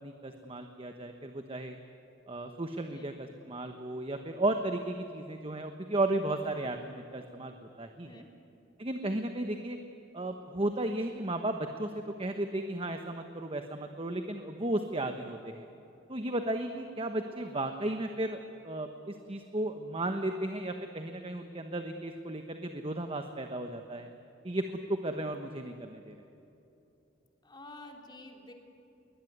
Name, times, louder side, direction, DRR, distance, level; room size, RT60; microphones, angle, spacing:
voice 1, 0.0-1.8 2.3-8.2 8.8-9.8 10.1-15.7 16.1-24.1 24.4-26.1, right 1 dB, 30° right, 6 dB, 1.2 m, -34 dB
voice 2, 27.4-28.5, left 2 dB, 25° left, 2 dB, 3.3 m, -50 dB
22.0 x 20.5 x 9.6 m, 2.9 s
head